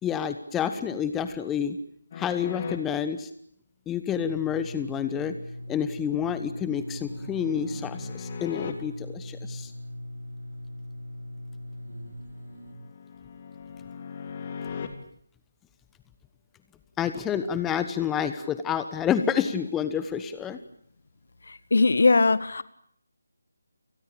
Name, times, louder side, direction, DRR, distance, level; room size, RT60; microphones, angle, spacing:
voice 1, 0.0-1.8 2.2-3.3 3.9-5.4 5.7-9.7 17.0-20.6, left 8 dB, 10° left, 11 dB, 1.1 m, -29 dB
sound 1, 2.1-2.8 6.2-8.7 11.8-14.9, left 7 dB, 30° left, 3.0 m, -39 dB
sound 2, 4.2-12.7, left 1 dB, 65° right, 3.7 m, -40 dB
voice 2, 21.5-22.6, left 3 dB, 55° left, 16 dB, 1.7 m, -20 dB
29.5 x 19.5 x 8.9 m, 0.68 s
figure-of-eight pair, 155°, 0 cm